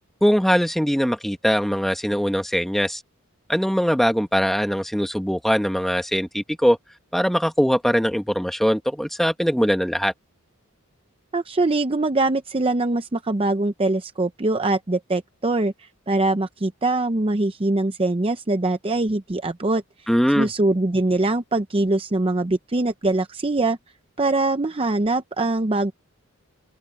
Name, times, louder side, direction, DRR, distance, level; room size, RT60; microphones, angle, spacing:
voice 1, 0.2-3.0 3.5-6.8 7.1-10.1 20.1-20.5, equal, ahead, 1.7 m, -21 dB
voice 2, 11.3-20.1 20.4-23.8 24.2-25.9, right 2 dB, 25° right, 0.7 m, -23 dB
open air
head